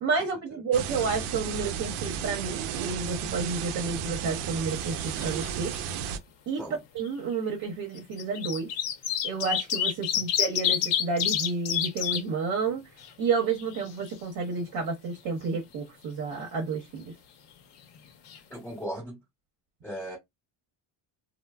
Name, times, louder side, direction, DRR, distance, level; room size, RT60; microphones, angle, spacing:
voice 1, 0.0-5.7 6.5-6.6 6.9-8.7 9.2-12.8 13.2-17.1, right 4 dB, 50° right, 0.8 m, -30 dB
sound 1, 0.7-6.2, right 8 dB, 80° right, 0.6 m, -33 dB
sound 2, 4.7-5.5 5.7-5.8 7.0-7.1 8.0-12.2 12.7-12.8 13.0-14.1 17.9-18.0 18.3-18.4, left 10 dB, 60° left, 0.7 m, -28 dB
voice 2, 18.5-19.2 19.8-20.2, equal, 5° left, 0.8 m, -37 dB
3.1 x 2.0 x 2.3 m
cardioid pair, 155°, 50 cm